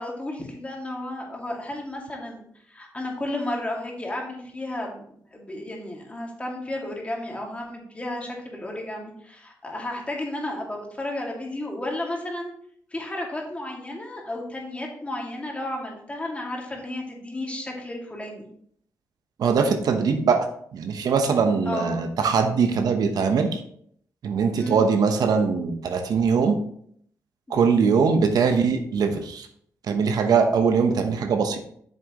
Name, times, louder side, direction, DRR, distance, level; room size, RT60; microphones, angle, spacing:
voice 1, 0.0-5.0 5.3-12.5 12.9-18.5 21.7-21.9 24.5-24.8 27.5-27.7, left 1 dB, 20° left, 0 dB, 2.3 m, -33 dB
voice 2, 19.4-20.5 20.7-23.6 24.2-26.6 27.5-29.5 29.9-31.6, right 5 dB, 80° right, 6 dB, 1.0 m, -21 dB
8.8 x 6.5 x 3.1 m, 0.65 s
cardioid pair, 90°, 7 cm